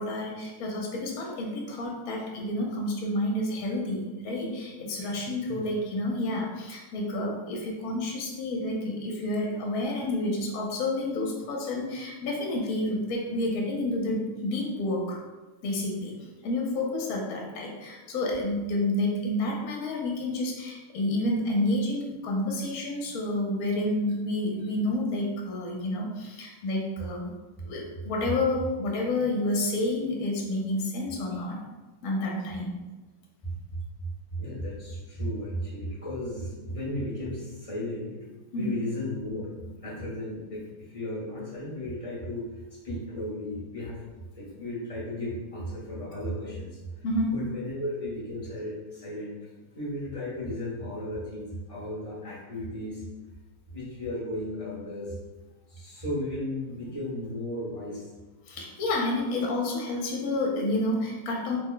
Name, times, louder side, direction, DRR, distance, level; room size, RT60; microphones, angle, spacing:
voice 1, 0.0-15.2 15.6-16.1 16.4-27.2 27.6-31.6 32.0-32.8 38.5-38.7 47.0-47.4 58.5-61.6, left 1 dB, 65° left, -1 dB, 1.0 m, -29 dB
voice 2, 33.4-33.8 34.3-38.1 38.5-39.5 39.8-42.5 42.8-44.0 44.3-49.4 49.7-53.0 53.7-55.2 55.7-58.1 59.9-60.0, left 1 dB, 30° left, -7 dB, 0.7 m, -35 dB
3.3 x 2.1 x 3.8 m, 1.2 s
omnidirectional pair, 1.8 m